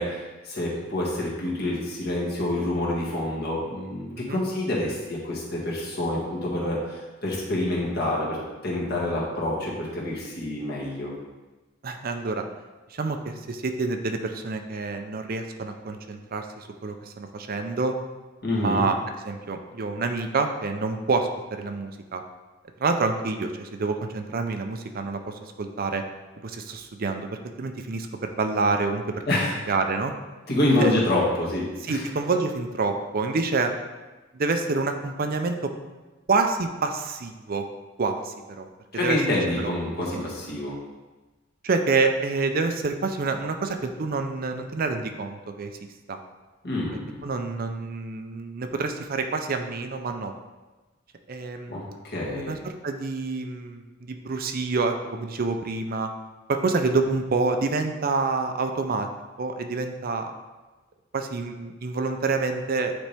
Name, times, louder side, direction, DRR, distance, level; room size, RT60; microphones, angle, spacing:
voice 1, 0.0-8.4 8.6-11.1 18.4-18.8 29.3-29.5 30.5-32.0 38.9-40.8 46.6-47.2 51.7-52.5, left 1 dB, 55° left, -4 dB, 1.8 m, -27 dB
voice 2, 11.8-12.5 12.9-18.0 18.5-19.0 19.2-22.2 22.8-26.0 26.4-29.2 29.7-30.1 30.8-30.9 31.8-33.7 34.3-35.7 36.3-37.7 38.0-38.7 39.0-39.2 39.6-39.7 40.1-40.3 41.6-45.7 46.1-46.2 47.2-50.3 51.3-51.7 52.3-56.1 56.5-59.1 59.4-60.3 61.1-62.9, right 3 dB, 45° right, 6 dB, 0.5 m, -27 dB
9.0 x 4.2 x 3.4 m, 1.2 s
head